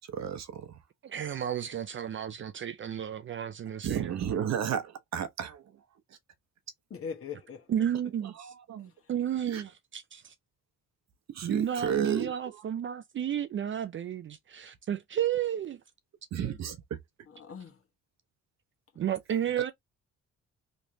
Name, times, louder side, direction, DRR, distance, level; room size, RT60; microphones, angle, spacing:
voice 1, 0.1-0.7 3.8-5.6 8.2-8.9 9.5-9.6 11.3-12.6 16.3-16.8, right 9 dB, 60° right, 0.9 m, -33 dB
voice 2, 1.0-4.5 7.7-8.3 9.1-10.2 11.4-15.8 19.0-19.7, right 9 dB, 40° right, 0.4 m, -32 dB
voice 3, 6.9-7.7 17.3-17.8, left 6 dB, 45° left, 1.3 m, -40 dB
3.2 x 3.1 x 2.7 m
cardioid pair, 90°, 30 cm